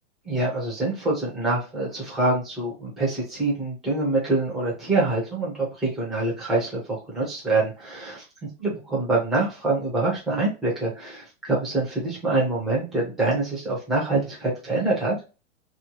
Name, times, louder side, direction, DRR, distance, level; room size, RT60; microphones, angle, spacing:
voice 1, 0.3-8.2 8.6-15.1, right 2 dB, ahead, -5 dB, 0.3 m, -25 dB
2.9 x 2.1 x 2.7 m, 0.30 s
hypercardioid pair, 145°, 36 cm